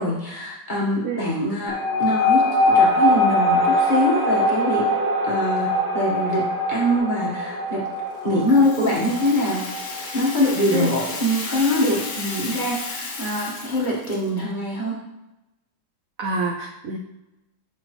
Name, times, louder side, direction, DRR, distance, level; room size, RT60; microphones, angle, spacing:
voice 1, 0.0-4.9 5.2-7.9 8.2-9.6 10.1-15.0, left 1 dB, 25° left, -5 dB, 1.4 m, -23 dB
sound 1, 1.7-12.6, left 1 dB, 5° right, 1.6 m, -22 dB
sound 2, 1.9-7.0, left 2 dB, 40° right, 3.0 m, -36 dB
Rattle (instrument), 8.4-14.4, left 3 dB, 55° left, 1.4 m, -34 dB
voice 2, 16.2-17.0, right 4 dB, 75° right, 2 dB, 0.7 m, -26 dB
6.8 x 5.7 x 3.1 m, 0.97 s
omnidirectional pair, 2.0 m